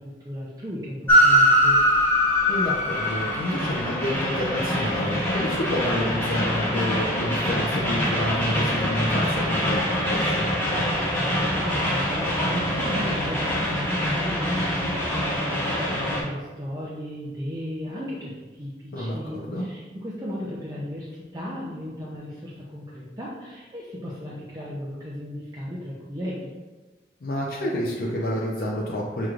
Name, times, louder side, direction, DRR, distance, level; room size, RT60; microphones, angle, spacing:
voice 1, 0.0-1.8 11.1-26.5, equal, 20° right, -6 dB, 0.5 m, -35 dB
Train, 1.1-16.2, equal, 10° left, 0.9 m, -23 dB
voice 2, 2.5-9.8 10.1-10.4 18.9-19.6 27.2-29.3, equal, 55° left, -3 dB, 0.5 m, -29 dB
6.2 x 3.0 x 2.4 m, 1.3 s
head